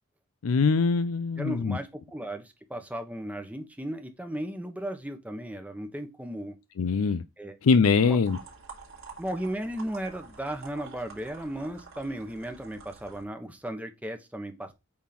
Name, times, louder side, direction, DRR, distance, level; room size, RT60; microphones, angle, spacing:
voice 1, 0.4-1.8 6.8-7.2 7.6-8.4, left 5 dB, 80° left, 0.5 m, -23 dB
voice 2, 1.4-6.6 7.4-7.6 8.0-8.2 9.2-14.7, right 1 dB, 5° right, 1.0 m, -35 dB
sound 1, 8.2-13.2, right 4 dB, 65° right, 3.4 m, -48 dB
8.6 x 3.7 x 5.9 m
head